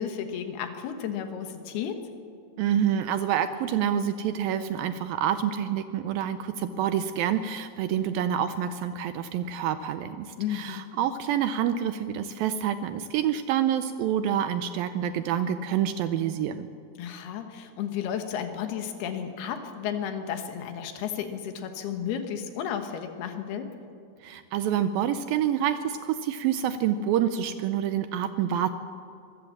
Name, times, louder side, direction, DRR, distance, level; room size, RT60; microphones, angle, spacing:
voice 1, 0.0-2.0 10.4-10.9 17.0-23.7, left 8 dB, 75° left, 7 dB, 3.3 m, -33 dB
voice 2, 2.6-16.7 24.2-28.7, right 9 dB, 80° right, 11 dB, 2.2 m, -27 dB
23.5 x 15.5 x 7.3 m, 2.5 s
omnidirectional pair, 4.7 m